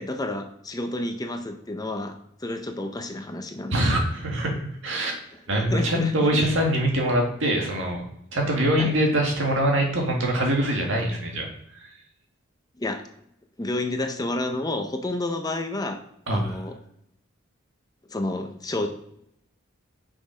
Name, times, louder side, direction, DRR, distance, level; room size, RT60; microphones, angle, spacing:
voice 1, 0.0-2.1 2.4-4.0 5.3-6.5 8.8-8.9 12.8-13.1 13.6-16.0 16.3-16.8 18.1-18.9, left 2 dB, 20° left, 6 dB, 0.7 m, -30 dB
voice 2, 3.7-5.2 5.5-8.1 8.3-11.5 11.7-11.9 16.3-16.6, right 1 dB, 70° right, 0 dB, 1.9 m, -24 dB
6.2 x 5.9 x 5.0 m, 0.75 s
head